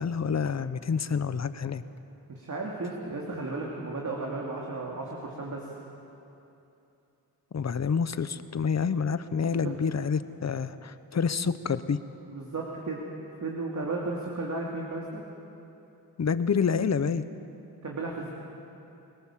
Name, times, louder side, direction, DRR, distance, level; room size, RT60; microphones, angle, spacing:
voice 1, 0.0-1.8 7.5-12.0 16.2-17.2, left 6 dB, 45° left, 13 dB, 0.9 m, -28 dB
voice 2, 2.3-5.7 9.6-9.7 12.3-13.0 13.4-15.2 17.8-18.3, right 3 dB, 50° right, -2 dB, 2.8 m, -34 dB
25.0 x 18.0 x 7.5 m, 2.8 s
cardioid pair, 90°, 38 cm